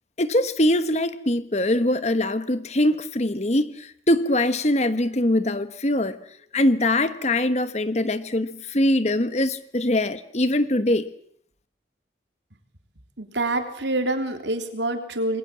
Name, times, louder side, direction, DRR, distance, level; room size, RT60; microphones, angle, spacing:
voice 1, 0.2-6.2 6.5-11.1, left 1 dB, 40° left, 1.3 m, -22 dB
voice 2, 13.2-15.4, right 2 dB, 80° right, 3.5 m, -26 dB
28.0 x 22.0 x 7.5 m
head